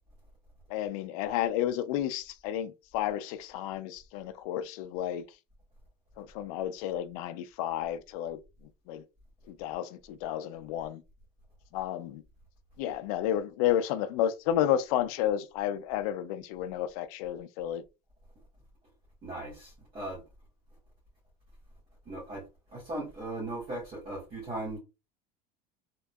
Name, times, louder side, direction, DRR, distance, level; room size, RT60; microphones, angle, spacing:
voice 1, 0.7-5.2 6.2-8.4 8.9-9.0 9.5-11.0 11.7-12.2 12.8-17.8, left 11 dB, 85° left, 0.4 m, -31 dB
voice 2, 19.2-20.2 22.0-22.4 22.7-24.8, right 2 dB, 30° right, 1.6 m, -38 dB
3.5 x 2.9 x 2.3 m
cardioid pair, 170°, 18 cm